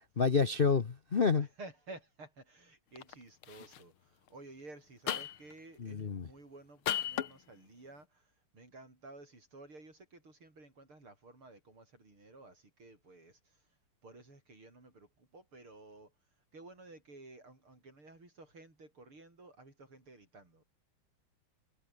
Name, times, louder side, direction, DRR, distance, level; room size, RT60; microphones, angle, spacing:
voice 1, 0.2-1.5 5.8-6.3, left 5 dB, 40° left, 0.8 m, -28 dB
voice 2, 1.3-8.2 8.5-13.4 14.0-16.1 16.5-20.6, right 2 dB, 75° right, 8.9 m, -53 dB
sound 1, 3.0-3.1 3.4-3.8 5.1-5.5 6.9-7.3, left 11 dB, 75° left, 2.0 m, -35 dB
omnidirectional pair, 2.4 m